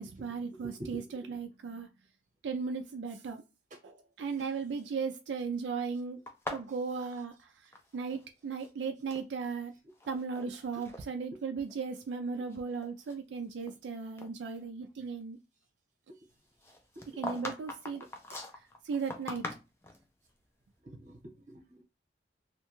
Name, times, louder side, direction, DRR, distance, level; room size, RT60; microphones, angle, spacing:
voice 1, 0.0-1.9 2.4-3.4 3.8-6.2 6.5-9.7 10.1-15.4 17.1-18.4 18.8-19.5, right 5 dB, 85° right, 0.3 m, -37 dB
voice 2, 0.6-1.3 16.1-16.2 17.0-17.1 20.8-21.8, right 1 dB, 45° right, 0.9 m, -47 dB
sound 1, 6.3-8.3 8.5-9.3 9.9-10.5 10.8-11.0 11.7-11.8 12.3-13.9 14.2-14.3 16.6-20.0, left 2 dB, 15° left, 0.3 m, -42 dB
2.8 x 2.2 x 2.9 m
head